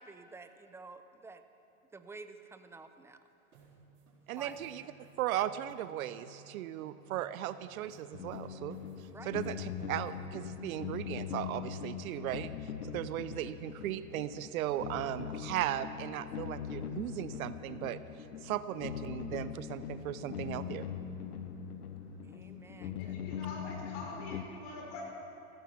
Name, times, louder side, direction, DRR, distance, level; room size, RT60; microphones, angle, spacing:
voice 1, 0.0-1.4 1.9-3.2 4.4-4.7 9.1-9.3 12.9-13.0 22.2-23.1, right 3 dB, 5° right, 9 dB, 0.5 m, -50 dB
sound 1, 3.5-6.5 6.8-9.5 9.8-10.9 11.1-12.2, right 5 dB, 90° right, 4.3 m, -58 dB
voice 2, 4.3-20.9, right 12 dB, 75° right, 14 dB, 0.7 m, -37 dB
sound 2, 8.1-24.4, left 8 dB, 90° left, 1.0 m, -41 dB
voice 3, 22.3-25.0, left 3 dB, 55° left, 0 dB, 4.6 m, -45 dB
15.0 x 13.5 x 6.0 m, 2.9 s
hypercardioid pair, 115°, 43 cm